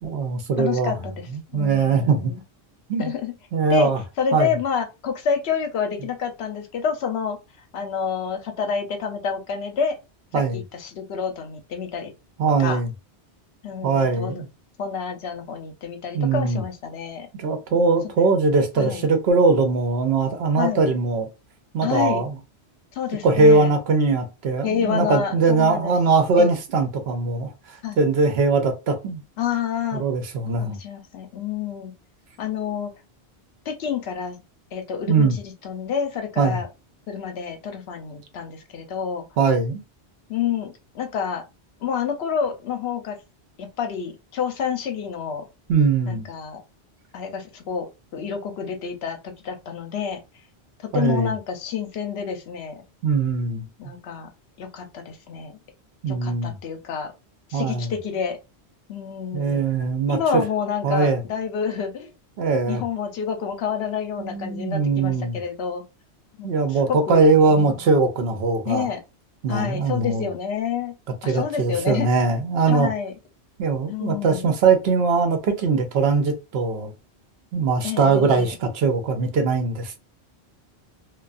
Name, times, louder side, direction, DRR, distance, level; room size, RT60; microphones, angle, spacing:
voice 1, 0.0-1.0 1.3-2.3 2.9-3.1 3.5-4.0 4.3-4.5 10.3-10.6 12.4-12.9 13.8-14.5 16.1-16.6 17.4-21.3 21.7-22.3 23.2-29.2 29.9-30.8 35.1-35.4 36.4-36.6 39.4-39.8 45.7-46.3 50.9-51.3 53.0-53.9 56.0-56.6 57.5-57.9 59.3-60.4 60.8-61.2 62.4-62.8 64.2-65.4 66.4-68.9 69.4-70.3 71.3-72.9 73.6-76.9 77.5-80.0, right 4 dB, 70° right, 0.8 m, -21 dB
voice 2, 0.6-1.3 1.5-2.4 3.0-3.3 3.7-3.9 4.2-7.4 7.7-10.0 10.5-12.1 12.6-12.8 13.6-14.4 14.8-17.3 17.7-18.0 18.8-19.1 20.6-20.8 21.8-22.2 22.9-23.7 24.6-25.9 26.4-26.5 27.8-28.0 29.4-30.0 30.6-31.9 32.4-32.9 33.7-34.4 34.7-36.7 37.1-39.2 40.3-41.4 41.8-43.2 43.6-45.5 46.1-46.6 47.1-50.2 50.8-52.8 53.8-54.3 54.6-55.6 56.1-57.1 57.5-58.4 58.9-59.6 60.1-62.1 62.5-65.8 66.4-67.3 67.6-67.8 68.6-69.0 69.5-70.9 71.2-72.1 72.7-73.1 73.9-74.5 77.8-78.6, left 7 dB, 75° left, 0.9 m, -28 dB
2.3 x 2.3 x 2.4 m
omnidirectional pair, 1.1 m